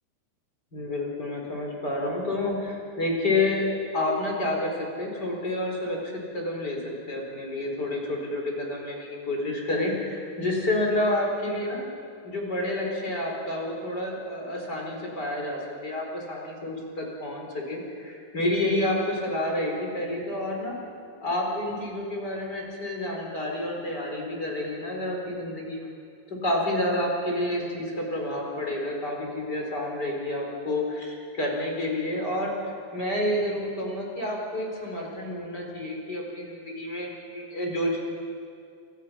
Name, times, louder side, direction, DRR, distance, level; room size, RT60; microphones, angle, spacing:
voice 1, 0.7-11.9 12.2-20.8 21.2-25.8 26.4-38.0, left 1 dB, 20° left, -1 dB, 4.5 m, -29 dB
28.0 x 28.0 x 5.9 m, 2.3 s
omnidirectional pair, 5.4 m